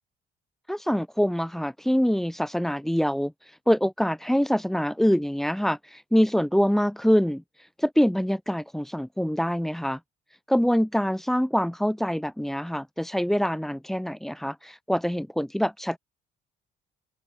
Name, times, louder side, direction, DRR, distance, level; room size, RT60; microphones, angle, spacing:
voice 1, 0.7-3.3 3.7-7.4 7.8-10.0 10.5-16.0, equal, ahead, 0.8 m, -25 dB
open air
cardioid pair, 110°, 17 cm